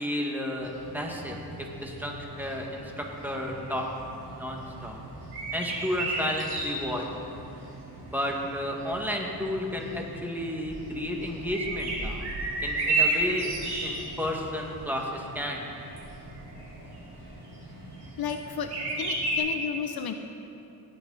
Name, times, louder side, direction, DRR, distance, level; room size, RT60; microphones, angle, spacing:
voice 1, 0.0-3.9 4.3-5.0 5.5-7.0 8.1-12.3 12.6-13.5 13.8-15.6, left 1 dB, 5° right, -1 dB, 1.9 m, -32 dB
sound 1, 0.5-19.4, right 2 dB, 75° right, 3.1 m, -35 dB
voice 2, 18.2-20.1, left 7 dB, 65° left, 7 dB, 0.7 m, -33 dB
17.5 x 8.3 x 4.1 m, 2.9 s
cardioid pair, 75°, 40 cm